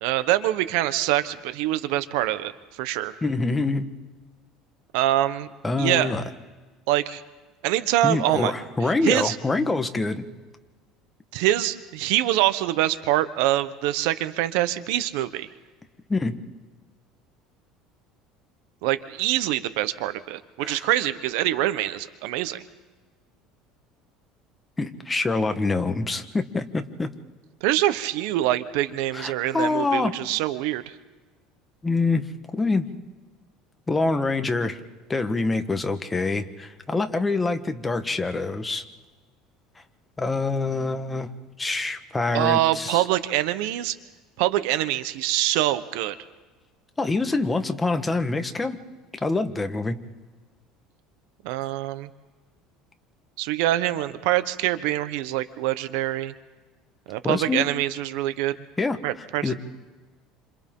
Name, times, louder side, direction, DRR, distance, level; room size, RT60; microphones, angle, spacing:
voice 1, 0.0-2.5 2.8-3.2 4.9-5.5 5.8-6.1 6.9-7.2 7.6-8.5 9.0-9.4 11.3-15.5 18.8-22.6 27.6-30.9 42.3-44.0 44.4-46.2 51.4-52.1 53.4-56.3 57.1-58.5 59.0-59.5, right 14 dB, 80° right, 12 dB, 1.1 m, -24 dB
voice 2, 3.2-3.9 5.6-6.2 8.0-10.3 16.1-16.4 20.6-20.9 24.8-27.1 29.1-30.1 31.8-32.3 32.5-32.9 33.9-34.8 35.1-38.8 40.2-41.3 41.6-43.0 47.0-48.8 49.2-50.0 57.2-57.7 58.8-59.0 59.4-59.5, left 3 dB, 15° left, 7 dB, 1.3 m, -25 dB
28.5 x 27.0 x 3.8 m, 1.3 s
cardioid pair, 140°, 0 cm